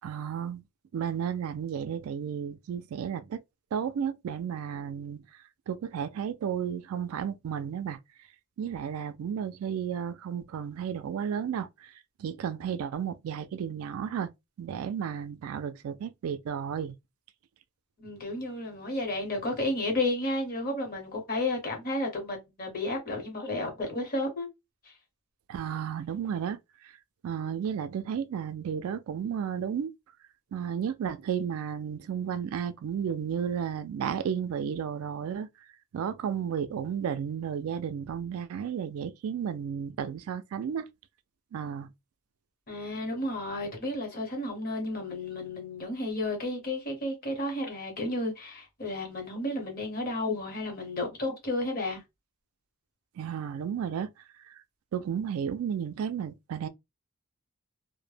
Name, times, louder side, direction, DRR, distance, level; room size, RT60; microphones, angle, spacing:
voice 1, 0.0-0.6 0.9-3.4 3.7-5.2 5.7-8.0 8.6-11.9 12.2-14.3 14.6-16.9 25.5-26.6 27.2-29.9 30.5-35.5 35.9-40.9 41.5-41.9 53.2-54.1 54.9-56.7, right 8 dB, 70° right, 0.3 m, -33 dB
voice 2, 18.0-24.5 42.7-52.0, left 2 dB, 45° left, 1.0 m, -32 dB
2.1 x 2.0 x 3.2 m
head